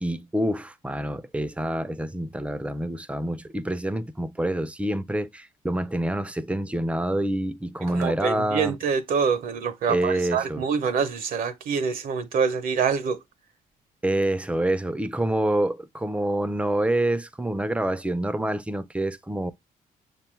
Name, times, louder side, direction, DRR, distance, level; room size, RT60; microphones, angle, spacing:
voice 1, 0.0-8.8 9.9-10.6 14.0-19.5, right 1 dB, 10° right, 0.4 m, -27 dB
voice 2, 7.9-13.2, right 6 dB, 65° right, 0.6 m, -25 dB
6.6 x 2.2 x 2.9 m
cardioid pair, 90°, 15 cm